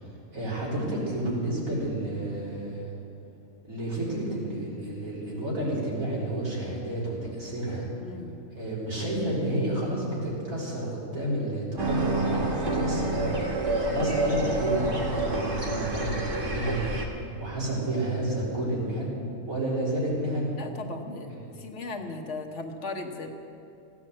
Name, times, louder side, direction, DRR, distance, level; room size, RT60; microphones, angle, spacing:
voice 1, 0.3-2.9 3.6-7.9 8.5-13.4 13.8-16.9 17.4-19.1 19.4-20.6 21.3-21.4, right 1 dB, 80° right, -6 dB, 4.0 m, -30 dB
voice 2, 8.0-8.4 20.6-21.3 21.6-23.3, left 3 dB, 60° left, 3 dB, 1.5 m, -37 dB
sound 1, 11.8-17.1, right 2 dB, 40° right, 1.8 m, -28 dB
16.0 x 9.5 x 7.7 m, 2.6 s
omnidirectional pair, 1.4 m